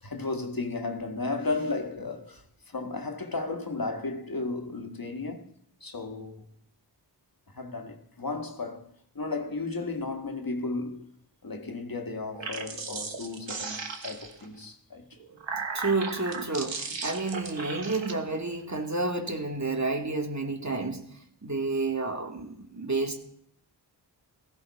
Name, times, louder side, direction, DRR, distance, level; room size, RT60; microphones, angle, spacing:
voice 1, 0.0-5.5 5.8-6.4 7.5-8.9 9.2-11.0 11.4-15.1, left 3 dB, 50° left, 1.8 m, -34 dB
sound 1, 12.2-14.5 15.1-18.1, right 4 dB, 80° right, 1.8 m, -36 dB
voice 2, 15.7-21.0 21.4-23.2, right 3 dB, 40° right, 2.3 m, -30 dB
16.0 x 15.5 x 4.2 m
cardioid pair, 50°, 44 cm